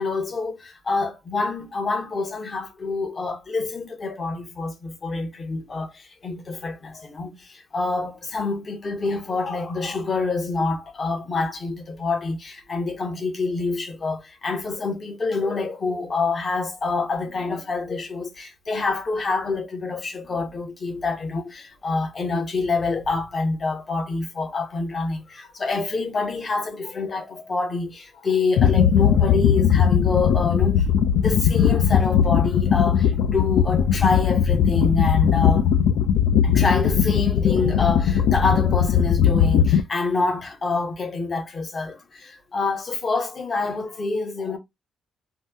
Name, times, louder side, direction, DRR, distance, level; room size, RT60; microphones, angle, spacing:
voice 1, 0.0-30.9 31.2-35.7 36.4-44.6, left 3 dB, 30° left, 0.7 m, -27 dB
sound 1, 28.6-39.8, left 8 dB, 80° left, 0.3 m, -19 dB
2.8 x 2.1 x 3.3 m
cardioid pair, 140°, 0 cm